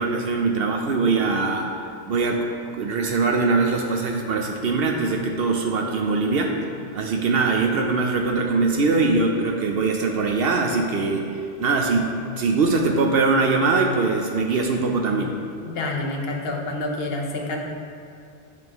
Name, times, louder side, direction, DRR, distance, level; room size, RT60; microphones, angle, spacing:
voice 1, 0.0-1.7 2.1-2.5 2.7-6.6 6.9-11.2 11.6-15.3, right 3 dB, 70° right, 2 dB, 0.8 m, -22 dB
voice 2, 15.6-17.6, left 2 dB, 70° left, 0 dB, 1.2 m, -28 dB
8.6 x 7.0 x 3.0 m, 2.6 s
omnidirectional pair, 1.1 m